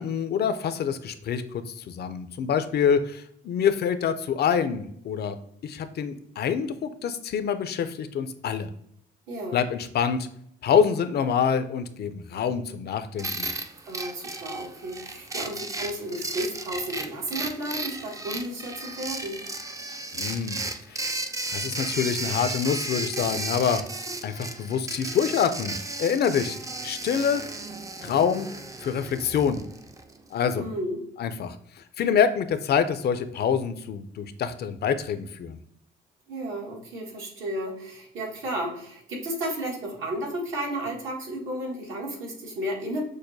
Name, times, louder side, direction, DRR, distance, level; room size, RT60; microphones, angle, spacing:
voice 1, 0.0-5.4 5.6-8.7 9.5-10.3 10.6-13.5 20.1-21.1 21.5-23.8 24.2-26.6 26.8-27.4 28.0-28.5 28.8-29.6 30.3-30.6 31.2-35.6, left 7 dB, 55° left, 11 dB, 0.4 m, -26 dB
voice 2, 9.3-9.6 13.8-19.4 30.6-31.0 36.3-43.0, right 1 dB, 80° right, -2 dB, 1.5 m, -33 dB
sound 1, 13.2-30.2, right 2 dB, 15° right, 0.4 m, -34 dB
6.3 x 2.1 x 2.6 m, 0.69 s
cardioid pair, 90°, 20 cm